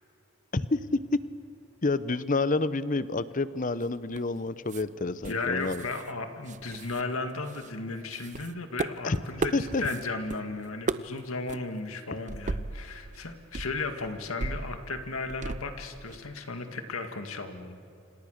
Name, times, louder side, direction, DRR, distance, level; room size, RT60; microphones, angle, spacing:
voice 1, 0.5-1.2 1.8-5.8 9.0-9.2 9.5-9.8, left 3 dB, 35° left, 15 dB, 0.7 m, -28 dB
book handling noises, 3.8-4.4 4.7-4.8 5.2-6.1 6.4-7.7 8.1-10.4 10.6-11.2 11.5-11.6 12.3-13.2 13.5-16.2, right 3 dB, 35° right, 0.7 m, -36 dB
voice 2, 5.2-17.9, left 3 dB, 75° left, 6 dB, 2.0 m, -35 dB
28.5 x 27.0 x 6.6 m, 2.7 s
head